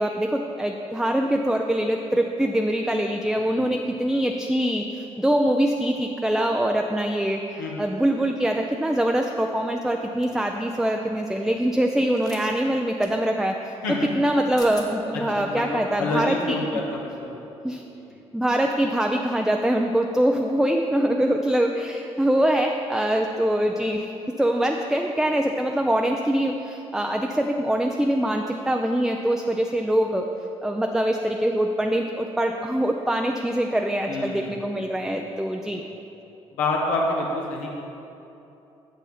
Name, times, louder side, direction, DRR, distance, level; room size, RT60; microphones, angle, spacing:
voice 1, 0.0-16.8 17.6-17.8 18.3-24.1 24.4-30.3 30.6-35.8, right 1 dB, 5° right, 3 dB, 0.5 m, -24 dB
sound 1, 10.2-10.4 12.1-12.4 13.0-13.1 14.3-14.4 14.6-14.9, left 2 dB, 25° left, 1.2 m, -42 dB
voice 2, 15.1-17.4 18.0-18.1 34.1-34.8 35.6-35.8 36.5-37.8, left 2 dB, 80° left, -3 dB, 1.1 m, -28 dB
8.3 x 6.9 x 4.1 m, 2.9 s
hypercardioid pair, 45°, 14 cm